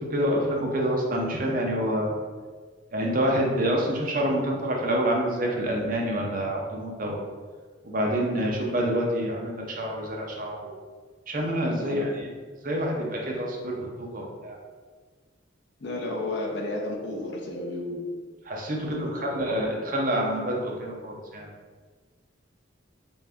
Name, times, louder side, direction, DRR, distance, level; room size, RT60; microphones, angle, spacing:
voice 1, 0.1-2.2 2.9-7.2 7.8-10.7 11.3-12.1 12.6-14.6 18.5-21.5, equal, 45° right, -1 dB, 0.6 m, -27 dB
voice 2, 11.8-12.3 14.2-14.3 15.8-18.0 18.9-19.6, left 2 dB, 55° left, -2 dB, 0.6 m, -33 dB
3.4 x 2.6 x 3.4 m, 1.5 s
head